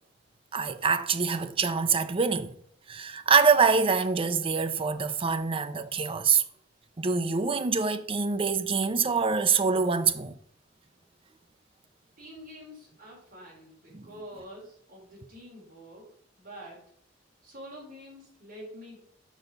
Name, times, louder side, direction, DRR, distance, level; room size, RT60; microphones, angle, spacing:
voice 1, 0.5-2.5 2.9-6.4 7.0-10.3 13.9-14.1, right 5 dB, 30° right, 0.5 m, -25 dB
voice 2, 12.2-16.1 16.4-16.9 17.4-19.0, equal, 50° right, 3.7 m, -46 dB
6.2 x 5.4 x 5.2 m
head